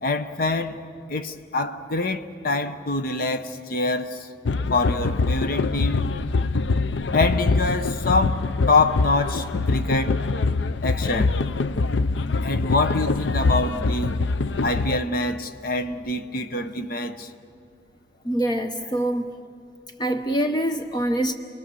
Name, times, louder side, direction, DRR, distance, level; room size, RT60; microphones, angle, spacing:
voice 1, 0.0-0.8 1.1-4.3 4.7-6.0 7.1-10.1 10.8-11.4 12.4-14.1 14.6-17.3, left 3 dB, 55° left, 1.0 m, -25 dB
sound 1, 4.5-15.0, left 3 dB, 80° left, 0.5 m, -24 dB
voice 2, 18.2-19.4 20.0-21.3, right 1 dB, 25° left, 0.8 m, -25 dB
29.5 x 21.0 x 7.0 m
head